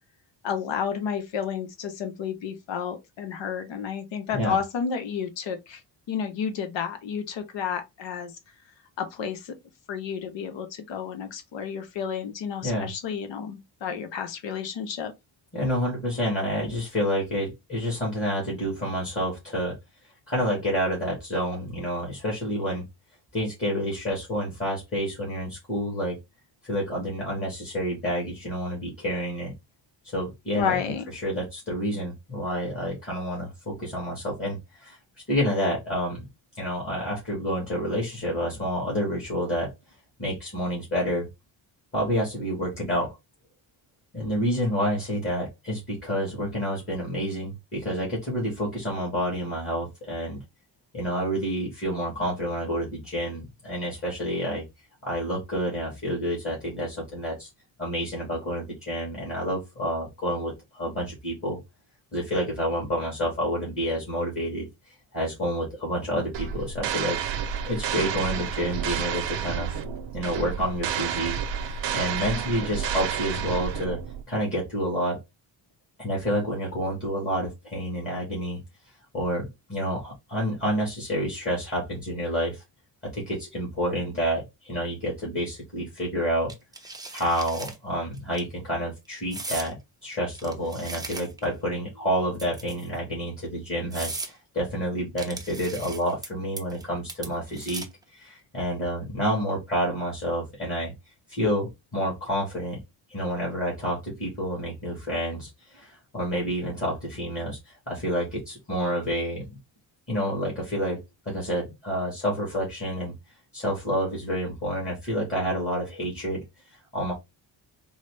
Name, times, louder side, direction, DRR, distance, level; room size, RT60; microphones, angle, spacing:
voice 1, 0.4-5.8 6.1-8.3 9.0-9.5 9.9-15.1 30.6-31.1, left 7 dB, 70° left, 0.8 m, -31 dB
voice 2, 15.5-19.8 20.3-22.8 23.3-26.2 26.7-29.5 30.1-30.8 31.2-35.0 35.3-36.2 36.6-39.7 40.2-41.3 41.9-43.2 44.1-50.4 50.9-54.6 55.0-57.5 57.8-61.6 62.1-64.7 65.1-67.2 67.7-69.8 70.1-74.0 74.3-75.2 76.0-78.6 79.1-82.6 83.0-86.5 87.1-97.8 98.1-100.9 101.3-102.8 103.1-109.6 110.1-113.1 113.5-116.4 116.9-117.1, equal, 30° left, 1.5 m, -29 dB
sound 1, 66.3-74.2, right 8 dB, 70° right, 0.7 m, -30 dB
sound 2, 86.5-87.8 88.2-88.4 89.3-89.7 90.3-91.5 92.3-93.0 93.5-93.6 93.9-94.3 95.2-96.3 96.6-96.8 97.1-98.0, right 2 dB, 10° right, 0.4 m, -37 dB
3.9 x 2.0 x 3.2 m
cardioid pair, 150°, 46 cm